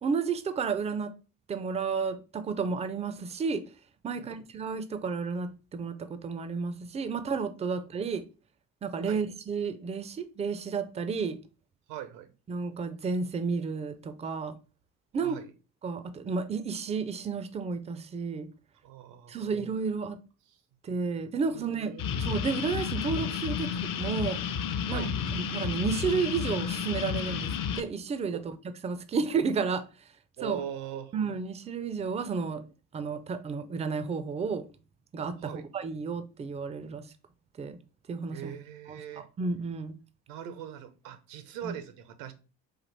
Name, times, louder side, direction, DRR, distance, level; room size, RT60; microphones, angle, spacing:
voice 1, 0.0-1.1 1.5-3.6 4.0-8.2 8.8-11.4 12.5-14.5 15.1-15.4 15.8-18.5 19.3-20.2 20.8-21.9 22.2-23.7 24.0-24.4 24.9-28.6 28.8-29.8 30.4-30.6 31.1-32.6 32.9-34.7 35.1-37.1 37.6-37.8 38.1-38.5 38.9-39.9 41.6-41.7, right 5 dB, 15° right, 0.3 m, -32 dB
voice 2, 11.9-12.3 15.2-15.5 18.8-19.5 21.5-22.0 24.9-25.1 28.3-28.4 30.4-31.1 35.4-35.7 38.3-39.3 40.3-42.3, right 10 dB, 75° right, 0.7 m, -41 dB
sound 1, 22.0-27.8, left 7 dB, 45° left, 0.6 m, -31 dB
4.1 x 2.5 x 3.2 m
hypercardioid pair, 50°, 46 cm